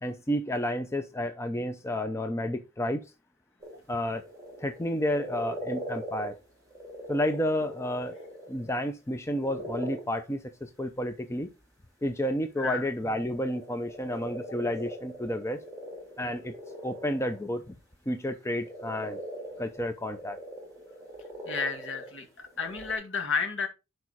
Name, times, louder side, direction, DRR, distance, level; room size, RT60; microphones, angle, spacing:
voice 1, 0.0-3.1 3.9-4.2 4.6-6.4 7.1-8.2 8.5-11.5 12.0-15.6 16.2-16.5 16.8-17.7 18.1-19.2 19.6-20.4, left 1 dB, 10° left, 0.6 m, -31 dB
sound 1, 3.6-6.4 6.7-8.7 9.2-10.2 12.7-17.4 18.3-18.4 18.6-22.2 22.5-22.9, right 1 dB, 15° right, 3.3 m, -41 dB
voice 2, 21.5-23.7, left 5 dB, 60° left, 2.1 m, -31 dB
11.0 x 4.8 x 4.1 m
head